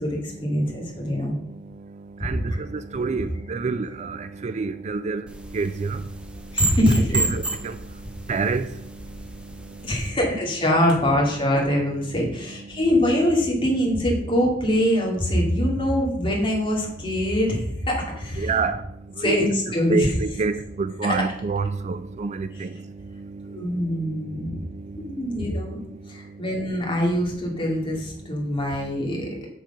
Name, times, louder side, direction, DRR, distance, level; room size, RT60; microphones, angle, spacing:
voice 1, 0.0-1.4 2.5-2.6 6.5-7.3 9.8-18.7 19.2-20.1 21.0-21.3 22.5-22.7 23.5-24.6 25.1-25.8 26.1-29.3, equal, 30° left, 2.3 m, -23 dB
voice 2, 2.2-5.2 5.5-6.0 7.1-7.8 8.3-8.7 18.4-18.8 19.2-19.5 19.9-22.7 23.2-23.6, right 4 dB, 40° right, 0.4 m, -27 dB
sound 1, 5.3-10.1, right 2 dB, 5° right, 0.7 m, -31 dB
6.7 x 6.2 x 5.6 m
head